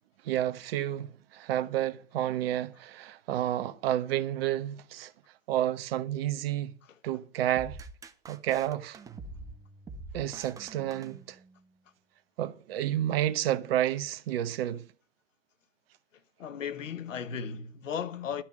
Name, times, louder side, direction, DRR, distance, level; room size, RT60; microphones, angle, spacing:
voice 1, 0.2-5.1 5.5-6.7 7.0-7.8 8.3-9.0 10.1-11.4 12.4-14.9, right 12 dB, 45° right, 1.0 m, -30 dB
sound 1, 7.6-11.7, right 3 dB, 10° right, 0.6 m, -46 dB
voice 2, 16.4-18.4, left 7 dB, 70° left, 1.3 m, -35 dB
12.5 x 5.9 x 7.2 m
figure-of-eight pair, 110°, 40 cm